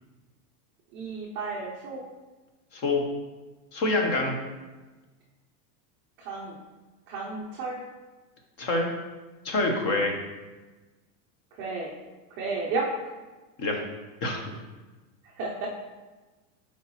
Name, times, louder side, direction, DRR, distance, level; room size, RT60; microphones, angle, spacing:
voice 1, 0.9-2.1 6.2-6.6 7.1-7.8 11.6-11.9 12.3-13.0 15.4-15.7, right 3 dB, 25° right, -3 dB, 0.5 m, -32 dB
voice 2, 2.7-3.0 3.7-4.4 8.6-8.9 9.4-10.1 13.6-13.8 14.2-14.4, left 2 dB, 30° left, 2 dB, 1.0 m, -25 dB
8.0 x 4.6 x 3.0 m, 1.2 s
supercardioid pair, 160°, 49 cm